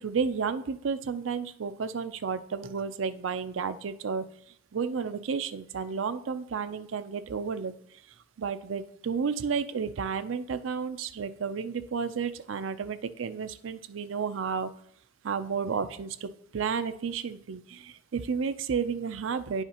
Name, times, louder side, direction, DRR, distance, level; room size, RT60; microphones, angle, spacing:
voice 1, 0.0-4.3 4.7-7.7 8.4-14.7 15.2-19.6, right 6 dB, 90° right, 11 dB, 0.5 m, -32 dB
10.0 x 5.7 x 2.9 m, 0.70 s
head